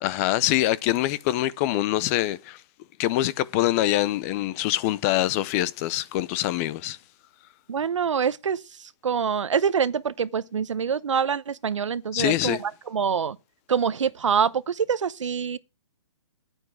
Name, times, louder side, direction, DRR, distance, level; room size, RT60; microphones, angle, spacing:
voice 1, 0.0-2.6 3.0-7.0 12.1-12.6, left 15 dB, 30° left, 0.6 m, -24 dB
voice 2, 7.7-8.6 9.0-13.4 13.7-15.6, right 7 dB, 85° right, 0.8 m, -25 dB
9.2 x 9.0 x 4.7 m
hypercardioid pair, 140°, 15 cm